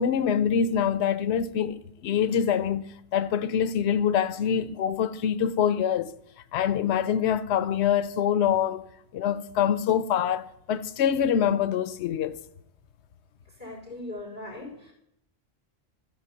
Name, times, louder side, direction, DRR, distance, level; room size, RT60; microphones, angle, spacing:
voice 1, 0.0-2.9 3.1-6.1 6.5-8.9 9.1-12.4, left 8 dB, 90° left, 0.9 m, -25 dB
voice 2, 13.6-14.9, left 2 dB, 50° right, 4.2 m, -39 dB
12.5 x 4.9 x 7.0 m
omnidirectional pair, 1.1 m